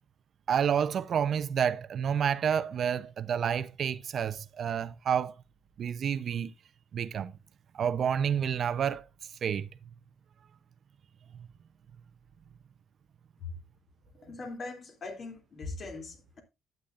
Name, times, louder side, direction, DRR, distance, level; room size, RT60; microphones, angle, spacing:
voice 1, 0.5-5.3 5.8-6.5 6.9-7.3 7.7-9.0 9.4-9.7, right 8 dB, 55° right, 0.8 m, -29 dB
voice 2, 14.2-16.4, left 3 dB, 45° left, 3.1 m, -41 dB
11.5 x 9.5 x 2.6 m
cardioid pair, 105°, 0 cm